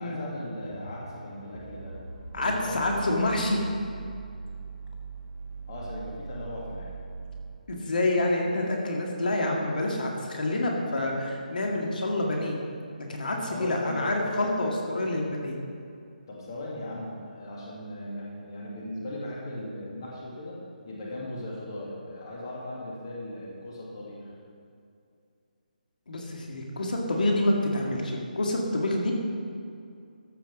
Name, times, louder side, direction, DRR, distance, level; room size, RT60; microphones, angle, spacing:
voice 1, 0.0-2.0 2.4-3.0 5.7-6.9 13.4-14.5 16.3-24.3, left 1 dB, 30° left, -4 dB, 2.1 m, -38 dB
sound 1, 0.6-7.6, right 4 dB, 40° right, 2.1 m, -41 dB
voice 2, 2.3-3.6 7.7-12.6 12.9-15.6 26.1-29.1, left 1 dB, 70° left, -1 dB, 2.0 m, -27 dB
13.5 x 6.0 x 6.1 m, 2.4 s
hypercardioid pair, 180°, 5 cm